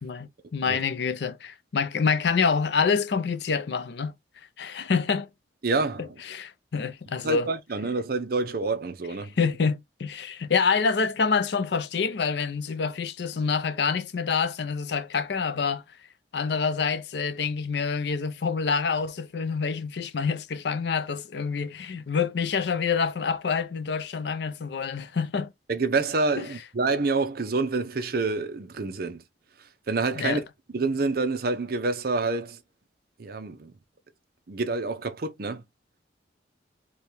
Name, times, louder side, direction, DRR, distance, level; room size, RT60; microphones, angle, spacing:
voice 1, 0.0-4.1 4.6-5.3 6.0-7.5 9.4-15.8 16.3-25.5 26.4-26.5 30.1-30.4, left 5 dB, 60° left, 0.5 m, -27 dB
voice 2, 5.6-6.2 7.2-9.3 25.7-29.2 29.9-30.4 30.7-32.6 33.2-33.7 34.5-35.6, right 3 dB, 50° right, 0.6 m, -27 dB
4.4 x 2.3 x 3.2 m
head